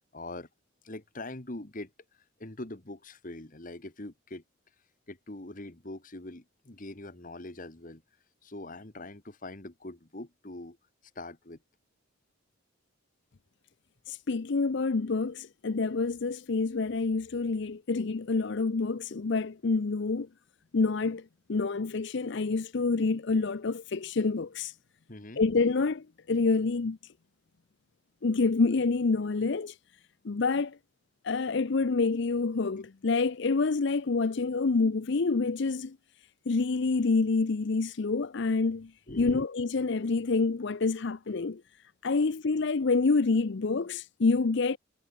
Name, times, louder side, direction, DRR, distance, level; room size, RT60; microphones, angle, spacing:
voice 1, 0.1-0.5 0.8-1.9 2.4-4.4 5.1-8.0 8.4-10.8 11.1-11.6 25.1-25.4 39.1-39.5, left 2 dB, 40° left, 1.6 m, -42 dB
voice 2, 14.1-20.3 20.7-24.7 25.4-27.1 28.2-29.8 30.2-30.8 31.2-36.0 36.5-41.6 42.0-44.8, left 4 dB, 55° left, 0.6 m, -27 dB
head